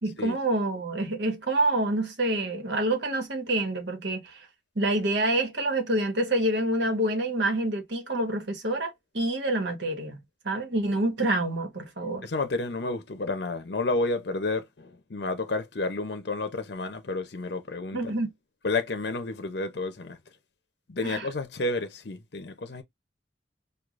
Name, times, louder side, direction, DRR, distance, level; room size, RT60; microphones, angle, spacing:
voice 1, 0.0-4.5 4.7-12.3 17.9-18.3 21.0-21.3, right 1 dB, 70° right, 1.3 m, -27 dB
voice 2, 12.2-18.1 18.6-20.2 20.9-22.8, left 2 dB, 60° left, 0.6 m, -30 dB
4.7 x 2.4 x 2.4 m
head